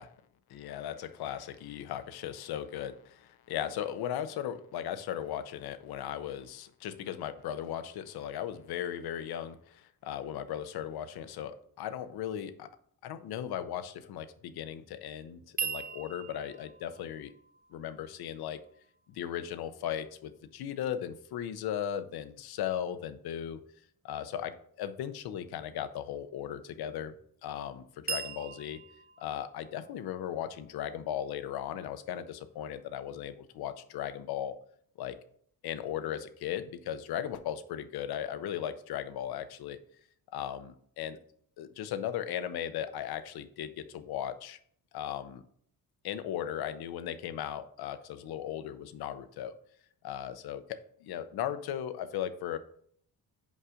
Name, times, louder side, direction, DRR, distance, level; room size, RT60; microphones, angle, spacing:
voice 1, 0.5-12.7 13.0-17.3 17.7-18.6 19.1-23.6 24.0-27.1 27.4-28.8 29.2-34.5 35.0-35.2 35.6-39.8 40.3-41.2 41.6-44.6 44.9-45.4 46.0-49.5 50.0-52.6, left 10 dB, 85° left, 12 dB, 0.7 m, -37 dB
sound 1, 15.6-19.6 28.1-31.9, right 6 dB, 25° right, 0.4 m, -42 dB
5.4 x 4.8 x 5.0 m, 0.62 s
cardioid pair, 165°, 37 cm